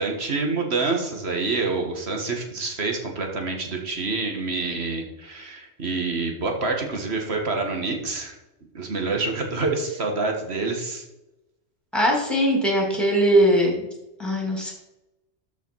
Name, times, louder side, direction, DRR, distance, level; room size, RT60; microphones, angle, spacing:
voice 1, 0.0-8.4 8.7-11.0, right 3 dB, 65° right, 3 dB, 1.9 m, -27 dB
voice 2, 11.9-13.8 14.2-14.7, equal, ahead, -1 dB, 2.8 m, -20 dB
12.5 x 5.2 x 4.7 m, 0.94 s
omnidirectional pair, 1.2 m